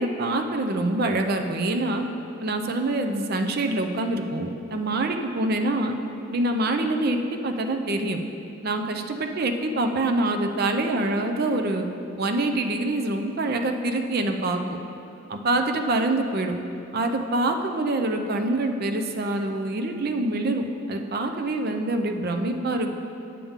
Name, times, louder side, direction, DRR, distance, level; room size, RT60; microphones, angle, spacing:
voice 1, 0.0-2.0 2.4-5.9 6.3-8.2 8.6-11.9 12.2-14.6 15.3-16.5 16.9-22.9, right 2 dB, 50° right, 5 dB, 0.5 m, -25 dB
8.4 x 7.1 x 3.6 m, 2.7 s
head